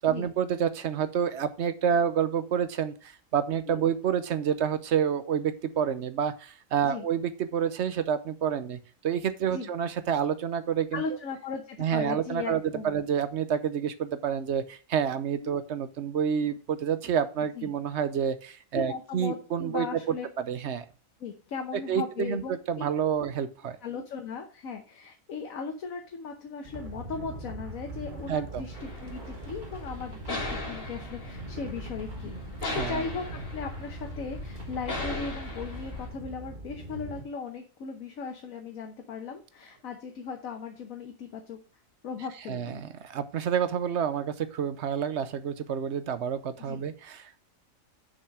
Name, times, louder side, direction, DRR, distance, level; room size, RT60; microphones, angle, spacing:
voice 1, 0.0-8.8 9.0-11.0 11.8-19.9 20.5-20.8 21.9-23.8 28.3-28.6 32.6-33.0 42.5-47.4, right 8 dB, 60° right, 12 dB, 0.9 m, -28 dB
voice 2, 10.9-13.0 15.4-15.6 17.5-17.7 18.7-20.3 21.2-22.8 23.8-32.3 32.7-41.6 42.0-42.8 46.6-46.8, left 5 dB, 80° left, 4 dB, 1.4 m, -37 dB
sound 1, 26.6-37.2, right 2 dB, 35° right, 1.4 m, -41 dB
sound 2, 28.7-36.1, left 2 dB, 65° left, 2.6 m, -38 dB
6.8 x 5.5 x 4.8 m, 0.37 s
omnidirectional pair, 1.4 m